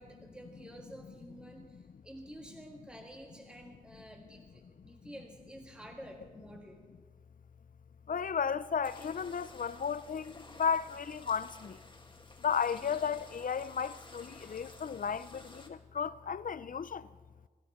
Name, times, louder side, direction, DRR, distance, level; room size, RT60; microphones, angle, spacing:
voice 1, 0.0-6.8, right 1 dB, 5° right, 1.8 m, -50 dB
voice 2, 8.1-11.8 12.4-17.1, left 6 dB, 60° left, 0.5 m, -34 dB
sound 1, 8.8-15.7, left 2 dB, 30° left, 2.1 m, -53 dB
24.5 x 12.5 x 4.3 m
wide cardioid pair, 70°, 15 cm